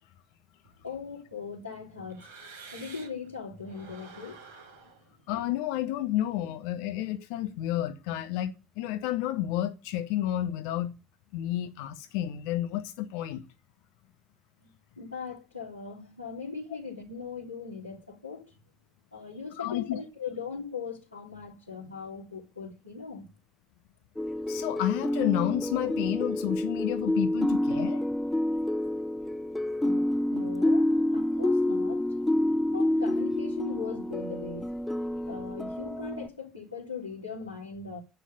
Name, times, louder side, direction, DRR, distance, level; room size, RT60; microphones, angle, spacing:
sound 1, 0.6-3.3 3.6-6.7, right 4 dB, 85° right, 3.8 m, -51 dB
voice 1, 0.8-4.4 14.6-18.6 19.1-23.3 29.8-30.0 30.3-32.0 32.7-34.7 35.3-38.0, left 5 dB, 85° left, 3.5 m, -39 dB
voice 2, 5.3-10.9 11.3-13.4 19.6-20.0 24.5-28.0, left 13 dB, 65° left, 1.2 m, -30 dB
sound 2, 24.2-36.3, left 1 dB, 10° left, 1.5 m, -28 dB
10.5 x 9.4 x 9.5 m
figure-of-eight pair, 50°, 0 cm